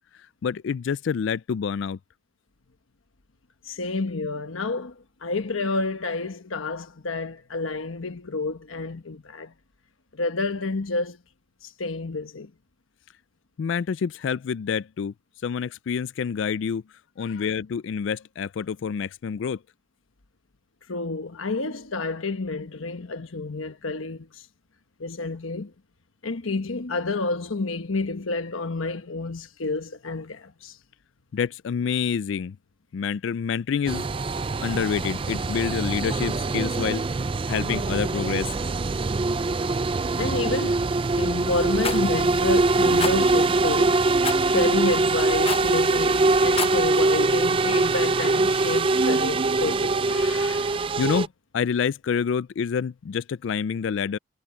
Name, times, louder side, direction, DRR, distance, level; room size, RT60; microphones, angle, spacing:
voice 1, 0.4-2.0 13.6-15.1 15.4-16.8 17.2-19.6 31.3-32.6 32.9-34.1 34.6-37.1 37.5-38.5 51.0-51.3 51.5-54.2, left 6 dB, 65° left, 0.3 m, -27 dB
voice 2, 3.6-9.5 10.1-11.2 11.6-12.5 17.2-17.5 20.9-24.5 25.0-25.7 26.2-30.8 40.2-44.1 44.4-50.9, left 3 dB, 85° left, 1.2 m, -29 dB
sound 1, 33.9-51.3, right 3 dB, 25° right, 0.4 m, -23 dB
Rattle, 41.8-42.0 43.0-43.2 44.2-44.5 45.4-45.7 46.4-46.8, left 6 dB, 30° left, 1.0 m, -29 dB
head